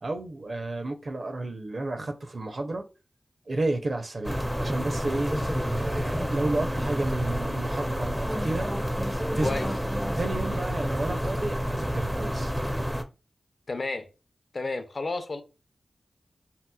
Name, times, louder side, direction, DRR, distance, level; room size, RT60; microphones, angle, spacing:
voice 1, 0.0-2.8 3.5-8.7 9.4-9.5 10.1-12.5, right 2 dB, 60° right, 0.6 m, -31 dB
sound 1, 4.2-13.0, equal, ahead, 0.4 m, -29 dB
voice 2, 13.7-14.1 14.5-15.4, left 3 dB, 55° left, 0.5 m, -31 dB
3.2 x 2.9 x 2.2 m
cardioid pair, 55°, 0 cm